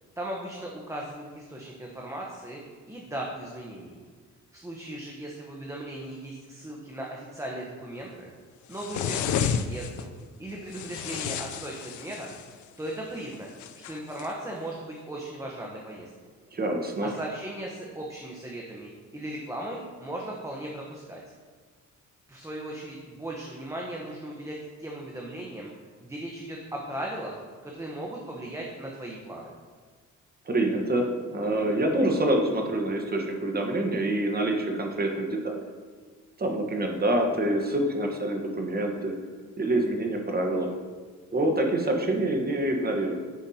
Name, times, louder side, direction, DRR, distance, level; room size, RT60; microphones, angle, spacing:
voice 1, 0.2-2.6 2.9-4.0 4.5-8.3 8.7-10.1 10.4-12.4 12.8-13.5 13.9-16.1 17.0-21.2 22.3-25.7 26.0-29.5, right 1 dB, 10° right, -2 dB, 1.0 m, -37 dB
sound 1, 8.7-10.0 10.7-12.5 13.6-14.3, left 8 dB, 75° left, 0.5 m, -31 dB
voice 2, 16.5-17.1 30.5-35.6 36.4-39.2 39.6-40.7 41.3-43.2, right 1 dB, 30° right, 3 dB, 1.3 m, -26 dB
10.0 x 5.7 x 2.9 m, 1.5 s
cardioid pair, 90°, 30 cm